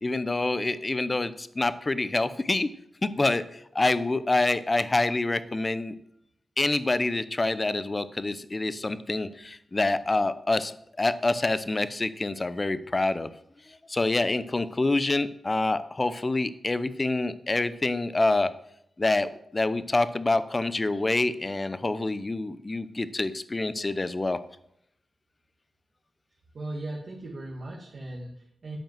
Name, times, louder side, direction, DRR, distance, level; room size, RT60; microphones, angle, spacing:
voice 1, 0.0-2.7 3.0-5.9 6.6-10.7 11.0-13.3 13.9-18.5 19.0-24.4, left 2 dB, 35° left, 14 dB, 0.7 m, -26 dB
voice 2, 26.5-28.8, right 2 dB, 65° right, -2 dB, 1.9 m, -38 dB
8.8 x 5.5 x 7.7 m, 0.75 s
cardioid pair, 45°, 0 cm